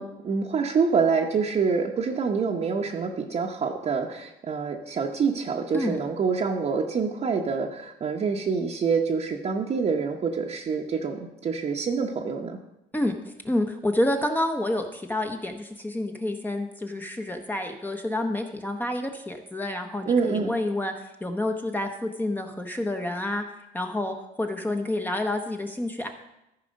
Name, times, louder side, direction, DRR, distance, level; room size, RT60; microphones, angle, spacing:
voice 1, 0.0-12.6 20.1-20.5, right 5 dB, 40° right, 0 dB, 0.9 m, -26 dB
voice 2, 13.4-23.4 23.7-26.1, left 1 dB, 10° left, 4 dB, 0.8 m, -28 dB
13.5 x 4.9 x 5.2 m, 0.90 s
cardioid pair, 110°, 17 cm